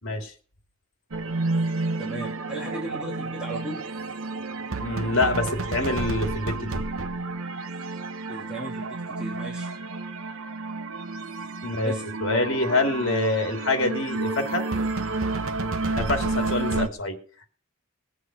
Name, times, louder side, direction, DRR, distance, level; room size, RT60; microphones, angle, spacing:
sound 1, 1.1-16.9, right 3 dB, 75° right, 1.1 m, -30 dB
voice 1, 2.0-3.9 8.3-9.7 11.8-12.0, right 1 dB, 5° right, -4 dB, 2.9 m, -36 dB
voice 2, 4.8-6.9 11.6-11.9 12.2-14.6 16.0-17.2, left 2 dB, 60° left, 4 dB, 2.9 m, -26 dB
20.0 x 8.2 x 6.3 m, 0.43 s
head